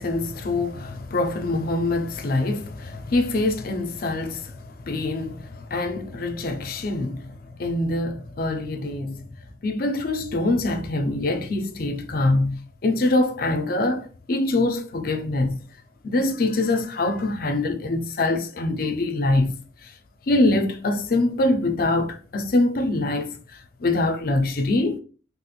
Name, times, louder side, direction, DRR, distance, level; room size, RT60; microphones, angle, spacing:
voice 1, 0.0-9.2 9.6-15.6 16.0-19.5 19.8-19.9 20.3-25.0, left 2 dB, 50° left, 0.4 m, -24 dB
3.3 x 2.9 x 2.3 m
head